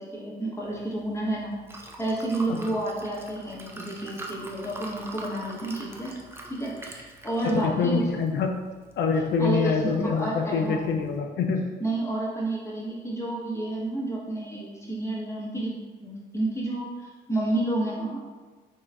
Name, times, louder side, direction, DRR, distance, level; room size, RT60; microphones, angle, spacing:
voice 1, 0.0-6.2 6.5-8.0 9.4-10.8 11.8-15.7 16.0-18.2, right 2 dB, 15° left, -5 dB, 0.9 m, -30 dB
Liquid, 0.6-11.2, right 2 dB, 10° right, 0.4 m, -45 dB
voice 2, 7.4-8.5 9.0-11.6, left 5 dB, 65° left, 3 dB, 0.4 m, -25 dB
3.7 x 2.4 x 3.3 m, 1.4 s
cardioid pair, 90°, 20 cm